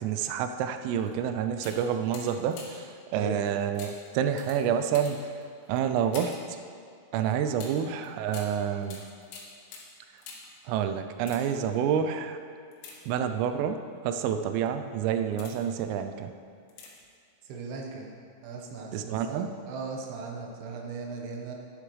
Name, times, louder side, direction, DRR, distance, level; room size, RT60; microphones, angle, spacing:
voice 1, 0.0-2.9 3.1-5.2 5.7-6.3 7.1-9.0 10.7-12.4 13.1-13.8 14.0-16.3 18.9-19.5, right 8 dB, 90° right, 7 dB, 3.2 m, -28 dB
sound 1, 1.0-1.2 1.6-2.9 3.8-6.5 7.6-10.6 11.1-11.8 12.7-13.6 14.2-14.5 15.0-15.8 16.7-17.2 17.4-17.5, left 4 dB, 80° left, 3.9 m, -47 dB
voice 2, 17.5-18.1 18.4-21.6, right 4 dB, 70° right, 0 dB, 2.6 m, -38 dB
11.5 x 11.0 x 3.2 m, 2.4 s
omnidirectional pair, 5.7 m